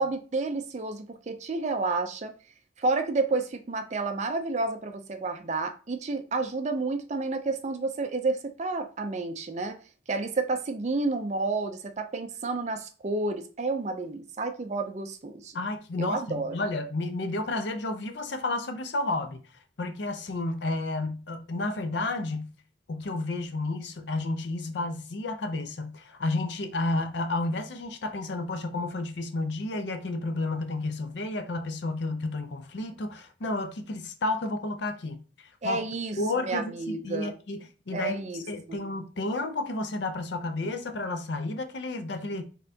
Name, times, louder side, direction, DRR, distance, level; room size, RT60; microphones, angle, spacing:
voice 1, 0.0-2.3 2.8-9.8 10.1-15.6 16.0-16.5 35.6-37.3 37.9-38.4 38.7-38.8, right 3 dB, 35° right, 0.4 m, -30 dB
voice 2, 15.5-19.4 19.8-22.5 22.9-35.2 35.6-38.1 38.5-42.4, left 2 dB, 65° left, 0.5 m, -31 dB
4.1 x 3.7 x 2.7 m
head